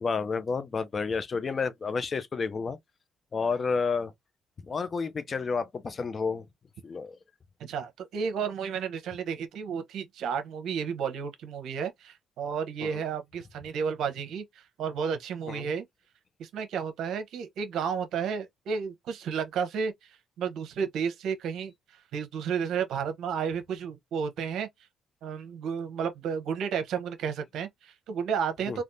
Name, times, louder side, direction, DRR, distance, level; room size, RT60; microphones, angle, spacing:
voice 1, 0.0-2.8 3.3-4.1 4.6-6.5 6.8-7.2 12.8-13.0 15.5-15.7 28.7-28.8, left 5 dB, 40° left, 0.6 m, -30 dB
voice 2, 7.6-15.8 16.4-24.7 25.2-28.8, right 6 dB, 80° right, 0.9 m, -32 dB
3.4 x 2.4 x 2.7 m
cardioid pair, 90°, 0 cm